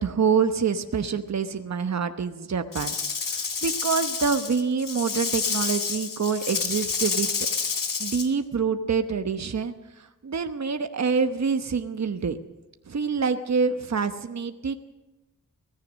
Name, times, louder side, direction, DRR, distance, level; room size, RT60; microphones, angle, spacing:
voice 1, 0.0-2.9 3.3-7.3 8.0-12.4 12.9-14.7, right 5 dB, 55° right, 8 dB, 1.0 m, -26 dB
Rattle / Rattle (instrument), 2.7-8.3, left 5 dB, 75° left, 2.3 m, -29 dB
24.0 x 17.5 x 6.3 m, 1.0 s
wide cardioid pair, 95°, 33 cm